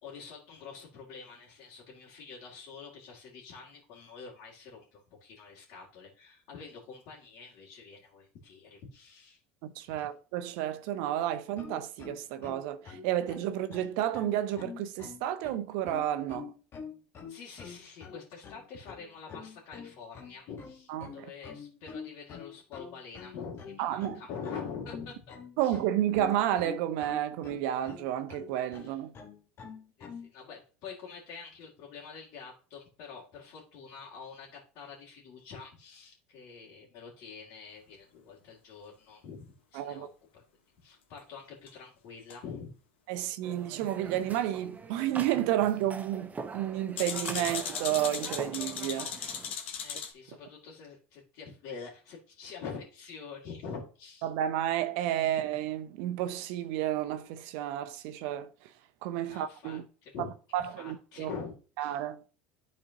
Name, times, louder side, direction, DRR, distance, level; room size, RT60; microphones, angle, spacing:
voice 1, 0.0-9.4 9.9-10.1 17.3-25.3 25.6-25.8 28.8-29.0 30.0-40.1 40.8-42.7 49.8-54.3 59.3-60.3 60.6-62.0, left 5 dB, 65° left, 2.3 m, -46 dB
voice 2, 9.6-16.5 20.9-21.3 23.8-24.2 25.6-29.1 39.8-40.1 43.1-49.3 54.2-58.5 59.0-59.8 60.5-61.3 61.8-62.2, right 12 dB, 70° right, 0.6 m, -31 dB
sound 1, 11.6-30.3, left 6 dB, 40° left, 1.4 m, -46 dB
sound 2, 41.7-41.8 42.3-42.4 45.0-45.1 47.0-50.1, left 7 dB, 85° left, 1.1 m, -37 dB
sound 3, 43.4-49.5, right 4 dB, 25° right, 0.7 m, -43 dB
11.0 x 4.2 x 2.8 m
hypercardioid pair, 85°, 6 cm